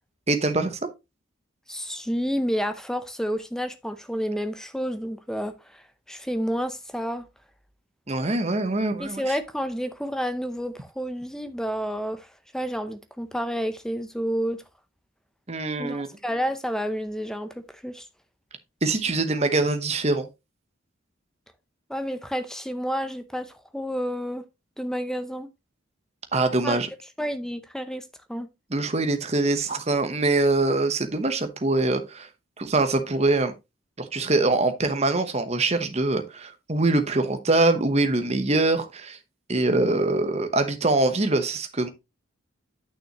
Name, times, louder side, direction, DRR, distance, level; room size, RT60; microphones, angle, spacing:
voice 1, 0.3-0.8 8.1-9.4 15.5-16.1 18.8-20.3 26.3-26.9 28.7-32.3 32.6-33.5 34.0-39.2 39.5-41.9, right 2 dB, 30° right, 1.0 m, -23 dB
voice 2, 1.7-7.3 9.0-12.3 12.5-14.6 15.8-18.1 21.9-24.4 24.8-25.5 26.6-26.8 27.2-28.5, equal, 5° left, 0.6 m, -30 dB
9.0 x 6.2 x 3.0 m
head